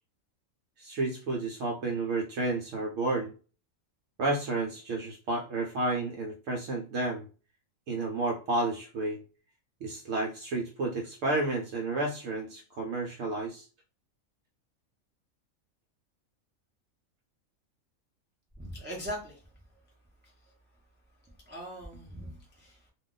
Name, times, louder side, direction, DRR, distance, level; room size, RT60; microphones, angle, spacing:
voice 1, 0.8-3.3 4.2-7.2 7.9-9.2 9.8-13.7, right 2 dB, 70° right, 1 dB, 0.9 m, -31 dB
voice 2, 18.6-19.4 21.5-22.9, equal, 15° right, -2 dB, 0.5 m, -40 dB
2.4 x 2.2 x 3.7 m, 0.36 s
omnidirectional pair, 1.4 m